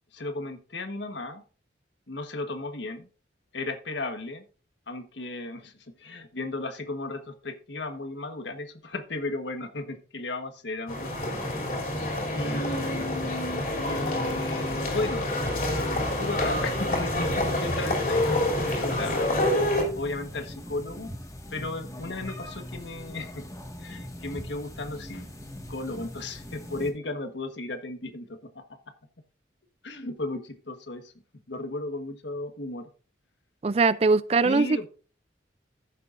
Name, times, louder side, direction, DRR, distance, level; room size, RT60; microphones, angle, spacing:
voice 1, 0.1-1.4 2.1-3.1 3.5-4.4 4.9-11.4 12.3-15.3 15.8-21.1 21.5-23.5 23.8-25.3 25.7-28.6 29.8-31.1 31.5-32.9 34.4-34.9, left 2 dB, 75° left, 1.4 m, -35 dB
sound 1, 10.9-19.8, left 1 dB, 45° left, 3.1 m, -27 dB
sound 2, 15.9-26.9, left 1 dB, 20° left, 1.7 m, -41 dB
voice 2, 33.6-34.9, right 4 dB, 35° right, 0.4 m, -22 dB
15.0 x 6.9 x 2.6 m
head